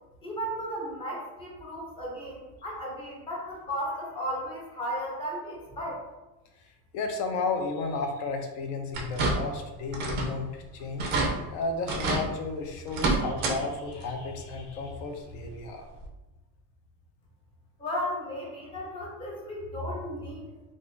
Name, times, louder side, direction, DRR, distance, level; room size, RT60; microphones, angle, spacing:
voice 1, 0.2-6.1 17.8-20.4, equal, 15° left, -4 dB, 0.6 m, -35 dB
voice 2, 6.9-15.9, left 3 dB, 60° left, 4 dB, 0.6 m, -33 dB
sound 1, 8.9-9.6 9.9-10.4 10.7-10.8 11.0-11.3 11.9-12.2 12.9-13.6 13.9-14.0 15.4-15.5 16.0-16.1, right 3 dB, 30° right, 0.4 m, -28 dB
2.4 x 2.4 x 3.6 m, 1.1 s
cardioid pair, 175°, 35 cm